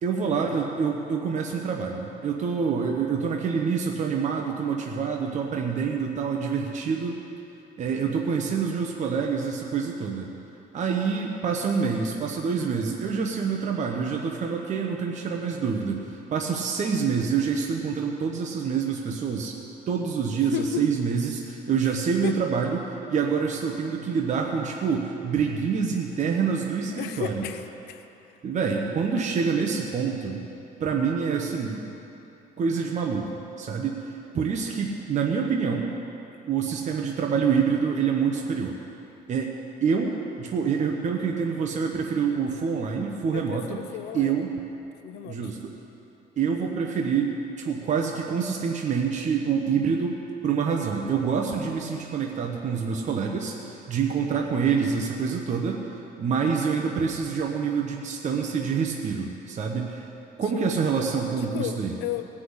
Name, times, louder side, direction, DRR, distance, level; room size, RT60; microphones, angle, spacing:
voice 1, 0.0-7.1 7.8-10.3 10.7-19.6 19.9-27.4 28.4-30.4 30.8-31.8 32.6-33.3 33.6-35.9 36.5-38.7 39.3-39.6 39.8-43.8 44.1-44.5 45.3-45.7 46.4-50.2 50.4-55.8 56.2-60.1 60.4-61.9, right 6 dB, 45° right, 1 dB, 1.1 m, -26 dB
voice 2, 20.5-20.9 21.8-21.9 22.2-22.3 26.9-28.1 43.3-44.5 45.0-45.4 60.5-60.7 61.4-62.3, left 11 dB, 80° left, 9 dB, 0.6 m, -33 dB
18.5 x 6.2 x 8.0 m, 2.9 s
cardioid pair, 110°, 17 cm